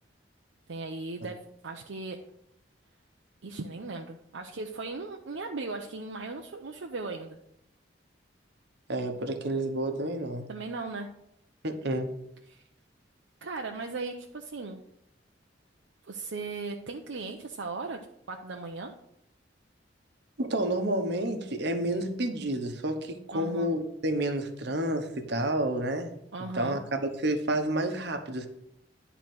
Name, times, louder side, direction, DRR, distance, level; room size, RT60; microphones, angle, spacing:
voice 1, 0.7-2.2 3.4-7.4 10.5-11.1 12.5-12.7 13.4-14.8 16.0-18.0 18.3-18.9 23.3-23.7 26.3-26.8, right 3 dB, 80° right, 2 dB, 0.7 m, -37 dB
voice 2, 8.9-10.4 11.6-12.1 20.4-26.1 26.5-28.5, right 1 dB, 65° right, 6 dB, 1.1 m, -30 dB
10.5 x 4.0 x 6.1 m, 0.78 s
head